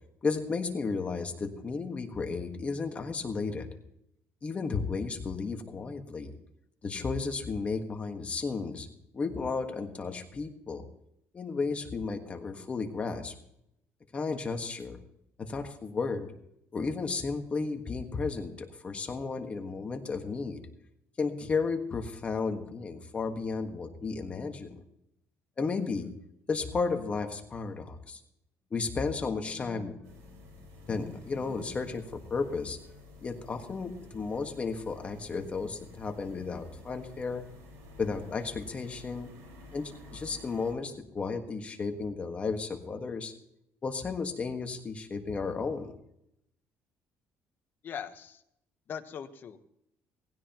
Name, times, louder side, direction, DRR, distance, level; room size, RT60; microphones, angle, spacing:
voice 1, 0.2-3.7 4.4-6.4 6.8-8.9 9.1-10.8 11.3-13.3 14.1-15.0 15.4-16.3 16.7-20.6 21.2-24.8 25.6-26.1 26.5-28.2 28.7-30.4 30.9-32.8 33.2-37.4 38.0-39.3 39.7-43.3 43.8-46.0, left 4 dB, 25° left, 4 dB, 1.5 m, -33 dB
sound 1, 30.0-40.7, left 2 dB, 85° right, 5.0 m, -51 dB
voice 2, 47.8-48.4 48.9-49.7, left 8 dB, 40° left, 8 dB, 1.1 m, -40 dB
19.0 x 16.0 x 3.0 m, 0.77 s
cardioid pair, 155°, 5 cm